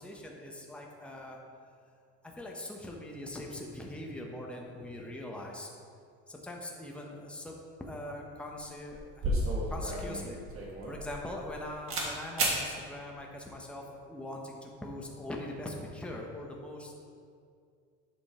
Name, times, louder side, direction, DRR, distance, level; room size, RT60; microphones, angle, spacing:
voice 1, 0.0-1.4 2.2-5.8 6.3-9.3 9.7-10.4 10.9-16.9, left 1 dB, 5° left, -1 dB, 0.9 m, -42 dB
sound 1, 8.5-8.6 8.9-11.6 11.9-12.1 12.4-12.6, right 1 dB, 45° right, 1.6 m, -32 dB
7.7 x 5.3 x 3.6 m, 2.3 s
cardioid pair, 115°, 30 cm